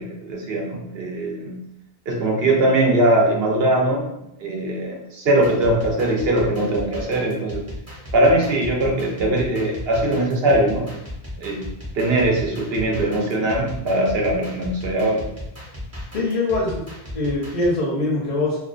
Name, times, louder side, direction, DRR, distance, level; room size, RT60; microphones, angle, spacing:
voice 1, 0.0-1.6 2.1-4.1 4.4-7.6 8.1-10.9 11.4-11.6 11.9-15.2, right 1 dB, 70° right, -1 dB, 0.8 m, -21 dB
sound 1, 5.4-17.7, left 1 dB, 20° right, 0.5 m, -36 dB
voice 2, 16.1-16.8 17.1-18.6, left 2 dB, 50° left, -4 dB, 0.6 m, -22 dB
2.3 x 2.2 x 2.4 m, 0.82 s
omnidirectional pair, 1.1 m